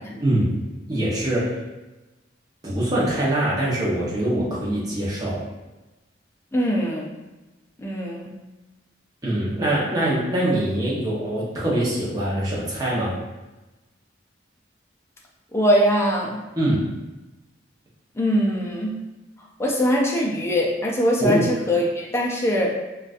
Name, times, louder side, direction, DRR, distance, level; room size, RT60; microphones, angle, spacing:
voice 1, 0.2-0.6 0.9-1.6 2.6-5.5 9.2-13.2 16.5-16.9 21.2-21.4, right 1 dB, 20° right, -7 dB, 0.7 m, -23 dB
voice 2, 6.5-7.1 7.8-8.4 15.5-16.4 18.2-19.0 19.6-22.7, equal, 15° left, -3 dB, 0.4 m, -22 dB
3.8 x 2.3 x 2.5 m, 1.1 s
head